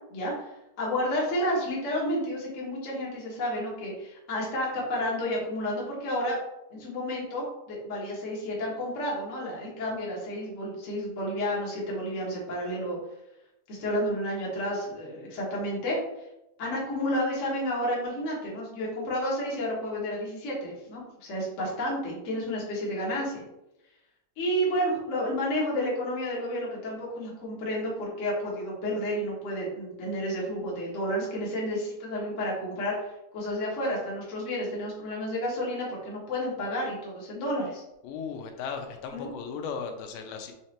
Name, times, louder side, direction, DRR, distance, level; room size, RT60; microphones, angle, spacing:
voice 1, 0.1-0.5 0.8-6.4 6.7-13.0 13.7-16.0 16.6-23.4 24.4-33.0 33.3-37.8 39.1-39.3, equal, 65° left, -5 dB, 0.7 m, -31 dB
voice 2, 38.0-40.5, left 6 dB, 85° left, 4 dB, 2.3 m, -36 dB
5.8 x 3.1 x 2.9 m, 0.89 s
omnidirectional pair, 3.8 m